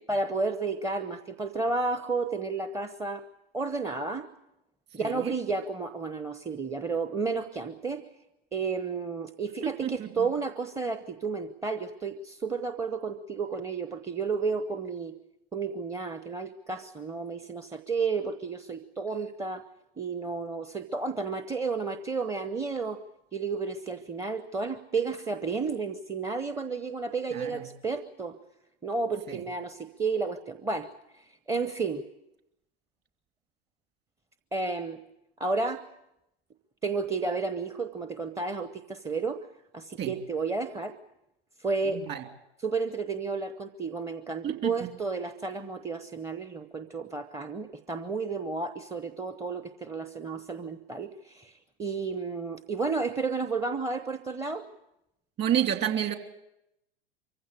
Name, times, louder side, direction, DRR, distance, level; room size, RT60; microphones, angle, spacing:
voice 1, 0.1-3.3 3.5-4.3 4.9-8.0 8.5-15.1 15.5-19.7 20.0-23.0 23.3-28.4 28.8-32.0 34.5-35.0 35.4-35.8 36.8-39.4 39.7-41.0 41.6-42.0 42.6-54.6, right 4 dB, 10° right, 9 dB, 0.8 m, -32 dB
voice 2, 5.0-5.3 9.6-10.3 27.3-27.6 29.3-29.4 40.0-40.1 41.9-42.2 44.4-44.7 55.4-56.2, right 10 dB, 30° right, 5 dB, 2.9 m, -29 dB
24.0 x 15.5 x 9.8 m, 0.86 s
figure-of-eight pair, 100°, 32 cm